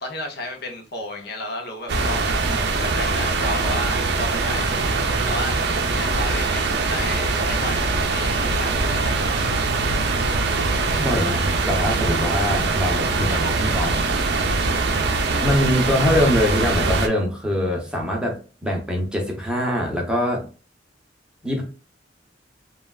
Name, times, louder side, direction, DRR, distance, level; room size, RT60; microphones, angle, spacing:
voice 1, 0.0-2.3 2.8-4.8 5.2-5.6 5.9-9.6 13.3-14.0, left 1 dB, 65° left, 2 dB, 0.7 m, -33 dB
sound 1, 1.9-17.1, right 3 dB, 65° right, 0.5 m, -22 dB
voice 2, 11.0-13.9 15.4-20.4 21.4-21.6, left 1 dB, 5° right, -1 dB, 0.7 m, -23 dB
3.2 x 2.3 x 2.3 m, 0.35 s
head